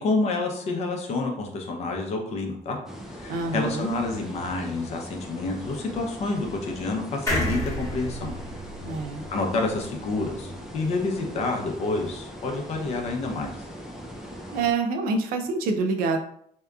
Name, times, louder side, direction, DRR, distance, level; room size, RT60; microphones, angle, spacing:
voice 1, 0.0-2.8 3.1-8.3 9.3-13.5, left 3 dB, 45° left, 1 dB, 0.6 m, -28 dB
sound 1, 2.9-14.7, equal, 5° right, 0.4 m, -40 dB
voice 2, 3.3-3.9 8.8-9.2 14.5-16.2, right 4 dB, 90° right, 5 dB, 0.4 m, -26 dB
sound 2, 7.3-10.7 11.1-11.2 11.4-11.5, left 1 dB, 20° left, 1.0 m, -32 dB
2.7 x 2.3 x 2.3 m, 0.66 s
cardioid pair, 135°, 15 cm